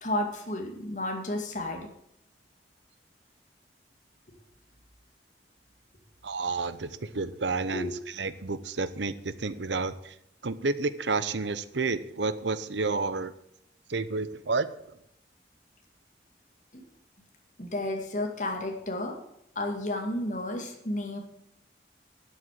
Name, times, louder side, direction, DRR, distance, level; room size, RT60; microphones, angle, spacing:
voice 1, 0.0-1.9 7.7-7.8 17.6-19.1 19.6-21.2, left 1 dB, 45° left, 2 dB, 2.2 m, -32 dB
voice 2, 6.2-7.9 8.2-10.1 10.4-13.3 13.9-14.7, right 3 dB, 85° right, 14 dB, 0.8 m, -30 dB
11.5 x 8.0 x 7.5 m, 0.75 s
head